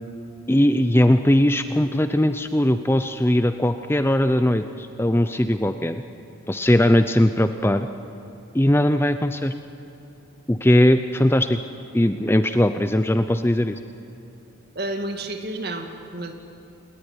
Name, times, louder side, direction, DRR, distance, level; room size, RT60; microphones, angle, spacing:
voice 1, 0.5-6.0 6.5-7.9 8.5-9.5 10.5-11.6 11.9-13.8, left 1 dB, 10° left, 9 dB, 0.6 m, -19 dB
voice 2, 14.8-16.3, right 1 dB, 50° right, 5 dB, 2.2 m, -30 dB
29.0 x 19.0 x 9.9 m, 2.8 s
head